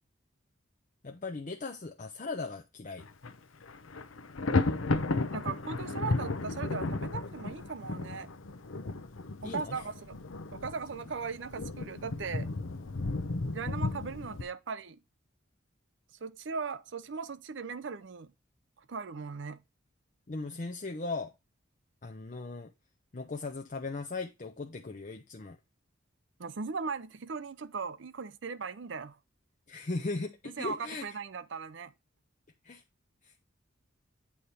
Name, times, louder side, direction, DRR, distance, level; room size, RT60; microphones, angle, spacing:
voice 1, 1.0-3.0 9.4-9.9 20.3-21.3 22.0-22.7 23.1-25.6 29.7-31.0 32.6-32.8 33.2-33.3, left 3 dB, 40° left, 0.6 m, -38 dB
Thunder, 3.0-3.3 3.6-14.4, left 3 dB, 90° left, 0.8 m, -34 dB
voice 2, 5.3-8.3 9.4-10.2 10.5-12.5 13.5-15.0 16.2-18.3 18.9-19.6 26.4-29.2 30.6-31.9, right 5 dB, 65° right, 0.5 m, -38 dB
8.5 x 3.2 x 5.5 m
head